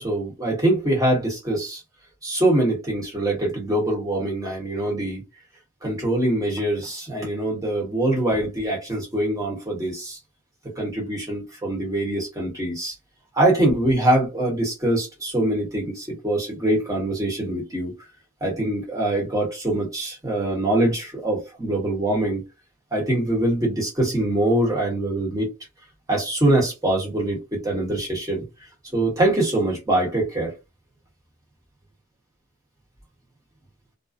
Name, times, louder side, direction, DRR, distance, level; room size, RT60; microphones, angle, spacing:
voice 1, 0.0-1.8 2.2-5.2 5.8-10.2 10.8-12.9 13.3-17.9 18.4-22.4 22.9-25.5 26.1-28.4 28.9-30.5, right 1 dB, 15° right, 1.1 m, -23 dB
2.5 x 2.2 x 2.4 m
head